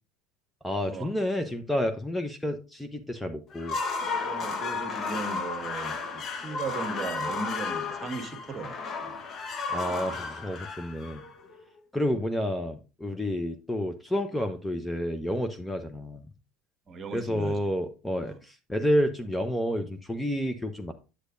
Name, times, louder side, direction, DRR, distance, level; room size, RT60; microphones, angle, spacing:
voice 1, 0.6-3.8 9.7-11.2 11.9-16.3 17.1-20.9, equal, 5° left, 0.9 m, -30 dB
sound 1, 3.5-11.6, left 4 dB, 40° left, 1.2 m, -33 dB
voice 2, 4.2-9.2 16.9-17.6 18.2-18.4, right 4 dB, 30° right, 1.7 m, -37 dB
8.1 x 8.0 x 2.6 m
hypercardioid pair, 80°, 0 cm